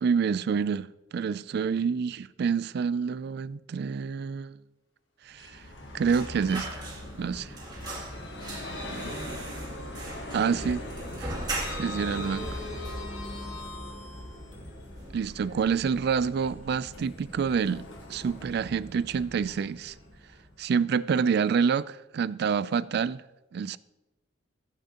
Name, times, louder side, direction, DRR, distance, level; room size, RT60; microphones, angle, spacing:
voice 1, 0.0-4.6 5.3-5.6 5.9-6.9 7.2-7.5 10.3-10.8 11.2-11.3 11.8-12.6 15.1-17.8 18.1-19.9 20.6-23.2 23.5-23.8, right 6 dB, 60° right, 0.3 m, -27 dB
Sliding door, 5.3-6.3 6.7-6.8 8.5-9.5 9.8-10.2 10.4-14.5 15.2-20.4, left 2 dB, 90° left, 1.2 m, -47 dB
Vehicle, 5.3-20.8, left 1 dB, 70° left, 1.4 m, -40 dB
sound 1, 6.0-7.3 7.6-12.1 12.4-12.5 12.8-13.7 14.0-14.2 14.5-15.2 15.5-15.7, right 2 dB, 20° right, 1.9 m, -39 dB
voice 2, 8.8-9.7 10.3-11.4 11.7-12.0 15.4-15.7, right 1 dB, 90° right, 1.6 m, -48 dB
14.0 x 8.9 x 2.9 m
head